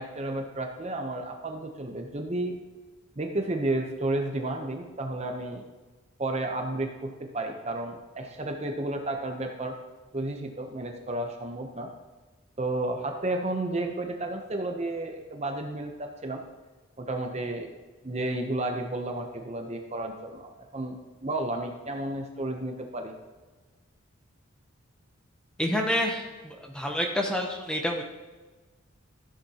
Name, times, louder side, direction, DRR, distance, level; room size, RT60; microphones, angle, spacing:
voice 1, 0.0-2.5 3.2-5.6 6.2-9.7 10.1-11.9 12.6-16.4 17.0-17.8 18.0-23.1, right 2 dB, 30° right, 3 dB, 0.7 m, -32 dB
voice 2, 25.6-28.0, left 1 dB, 5° left, 1 dB, 0.8 m, -28 dB
14.0 x 7.1 x 2.9 m, 1.3 s
head